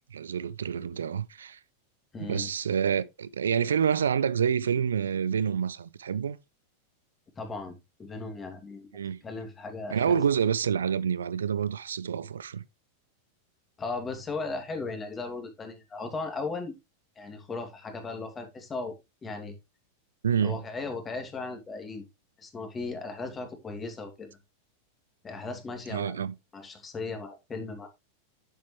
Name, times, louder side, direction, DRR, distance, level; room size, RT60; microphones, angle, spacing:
voice 1, 0.1-1.6 2.3-6.4 8.9-9.2 9.9-12.6 20.2-20.6 25.9-26.3, right 7 dB, 65° right, 0.6 m, -27 dB
voice 2, 2.1-2.5 7.4-8.9 9.2-10.2 13.8-16.7 17.2-19.0 19.2-19.5 20.4-22.0 22.4-24.4 25.2-27.9, left 3 dB, 20° left, 2.8 m, -37 dB
10.0 x 7.5 x 3.3 m
figure-of-eight pair, 90°, 0 cm